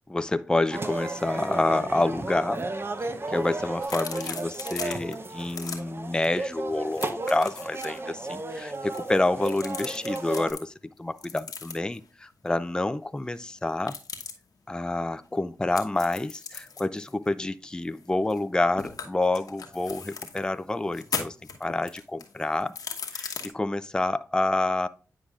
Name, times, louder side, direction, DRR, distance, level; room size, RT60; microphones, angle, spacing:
voice 1, 0.1-2.7 3.3-10.7 11.0-14.0 14.7-21.4 21.6-22.8 23.1-24.9, left 2 dB, 15° left, 0.4 m, -28 dB
sound 1, 0.7-10.5, right 2 dB, 40° right, 0.8 m, -34 dB
sound 2, 3.8-5.1 5.4-5.8 6.2-6.4 6.7-8.0 8.7-10.6 11.2-12.0 13.8-14.3 15.7-18.5 18.8-20.4 20.9-23.5, left 5 dB, 80° left, 1.0 m, -38 dB
9.4 x 5.0 x 2.4 m
cardioid pair, 50°, 6 cm